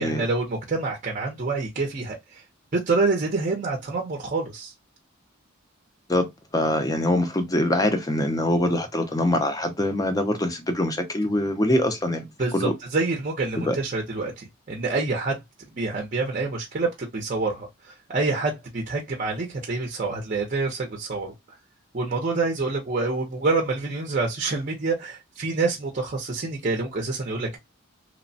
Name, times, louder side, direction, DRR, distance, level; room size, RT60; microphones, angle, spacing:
voice 1, 0.0-2.4 2.7-4.7 12.4-15.4 15.7-21.3 21.9-27.6, right 3 dB, 40° right, 0.5 m, -27 dB
voice 2, 6.5-12.3 12.5-12.7 13.6-13.8, left 1 dB, 15° left, 0.5 m, -23 dB
2.9 x 2.1 x 2.6 m
head